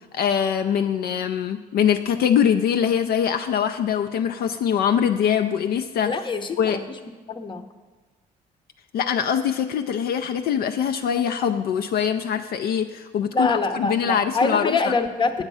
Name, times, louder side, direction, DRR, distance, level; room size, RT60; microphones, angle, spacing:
voice 1, 0.1-6.2 6.6-6.8 8.9-15.0, left 8 dB, 65° left, 7 dB, 0.5 m, -23 dB
voice 2, 6.1-6.8 7.3-7.6 13.3-15.4, left 3 dB, 30° left, 8 dB, 0.8 m, -24 dB
8.8 x 7.3 x 5.5 m, 1.3 s
cardioid pair, 110°, 17 cm